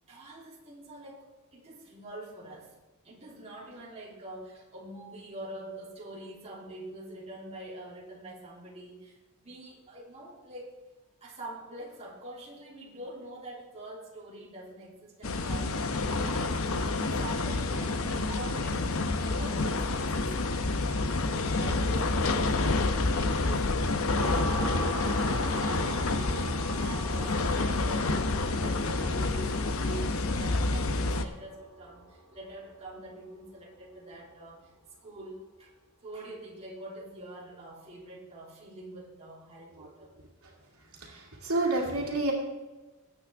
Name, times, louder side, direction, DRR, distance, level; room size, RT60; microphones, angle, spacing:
voice 1, 0.1-2.7 3.0-10.8 11.2-15.9 16.1-16.6 17.2-20.4 20.8-21.2 21.6-34.7 35.0-35.7 36.0-40.1, right 1 dB, 30° right, -5 dB, 3.2 m, -45 dB
sound 1, 15.2-31.2, left 3 dB, 70° left, 0.9 m, -28 dB
sound 2, 24.2-33.4, equal, ahead, 3.6 m, -40 dB
voice 2, 41.0-42.3, right 2 dB, 85° right, -1 dB, 2.4 m, -29 dB
21.0 x 8.7 x 3.6 m, 1.2 s
head